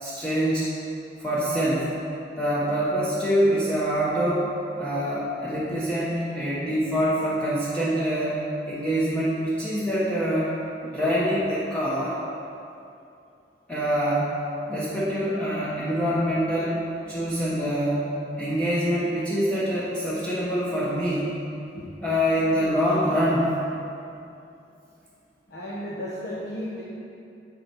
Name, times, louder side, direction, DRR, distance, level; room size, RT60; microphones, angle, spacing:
voice 1, 0.0-0.7 1.2-1.9 2.4-10.5 10.8-12.1 13.7-14.3 14.7-16.8 17.1-18.1 18.4-21.3 22.0-23.5, equal, 5° left, -10 dB, 1.0 m, -25 dB
voice 2, 25.5-26.8, equal, 65° left, -6 dB, 1.1 m, -34 dB
8.6 x 4.3 x 6.0 m, 2.6 s
head